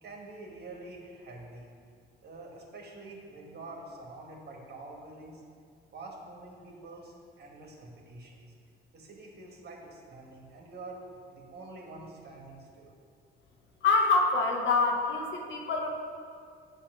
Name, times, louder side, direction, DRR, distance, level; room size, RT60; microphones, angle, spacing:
voice 1, 0.0-1.7 2.2-5.4 5.9-8.5 8.9-11.0 11.3-12.9, right 2 dB, 55° right, 0 dB, 1.3 m, -46 dB
voice 2, 13.8-15.9, left 3 dB, 70° left, 2 dB, 0.9 m, -26 dB
8.4 x 2.8 x 5.9 m, 2.2 s
cardioid pair, 90°, 20 cm